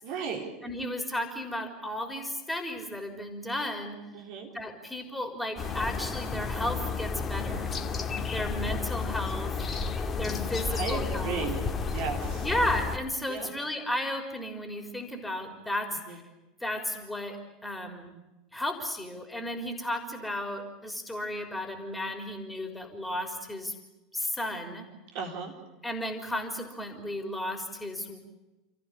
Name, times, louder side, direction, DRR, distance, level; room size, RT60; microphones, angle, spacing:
voice 1, 0.0-0.5 4.1-4.5 8.6-8.8 10.7-11.7 11.9-12.5 13.3-13.5 16.1-16.2 25.1-25.5, right 5 dB, 55° right, 2 dB, 4.0 m, -35 dB
voice 2, 0.6-4.0 4.5-7.7 8.3-9.6 10.2-11.5 12.4-16.2 16.6-18.2 18.5-23.8 24.1-24.9 25.8-28.2, left 1 dB, 5° left, 4 dB, 4.0 m, -34 dB
sound 1, 5.6-13.0, left 5 dB, 25° left, 2.3 m, -32 dB
29.0 x 14.5 x 10.0 m, 1.0 s
figure-of-eight pair, 80°, 0 cm